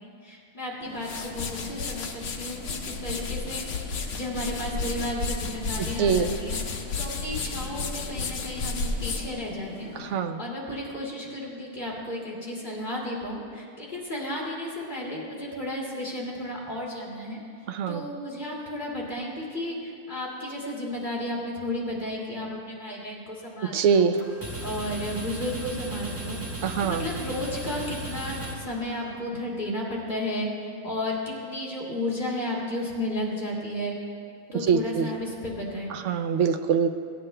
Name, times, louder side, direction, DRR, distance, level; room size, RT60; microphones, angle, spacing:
voice 1, 0.0-6.6 6.9-9.9 10.4-17.4 17.9-24.1 24.6-34.0 34.5-36.0, left 1 dB, 30° left, -4 dB, 2.3 m, -33 dB
sound 1, 0.8-10.2, left 4 dB, 60° left, 1.1 m, -33 dB
voice 2, 10.0-10.4 17.7-18.0 23.7-24.1 26.6-27.1 34.7-35.1 35.9-36.9, right 6 dB, 65° right, 8 dB, 0.8 m, -23 dB
sound 2, 24.1-29.3, right 1 dB, 15° right, 0.6 m, -36 dB
16.0 x 9.2 x 3.3 m, 2.3 s
omnidirectional pair, 1.5 m